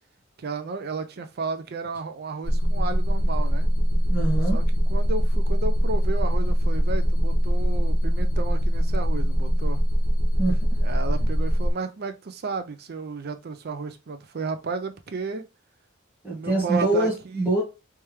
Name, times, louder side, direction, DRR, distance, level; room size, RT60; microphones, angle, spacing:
voice 1, 0.4-3.7 4.5-4.6 4.9-9.8 10.8-15.4 16.3-17.5, right 4 dB, 50° right, 0.5 m, -33 dB
sound 1, 2.4-11.7, equal, 65° left, 1.1 m, -22 dB
voice 2, 4.1-4.6 10.4-10.6 16.2-17.6, right 2 dB, 10° right, 1.3 m, -24 dB
3.4 x 3.3 x 3.1 m
head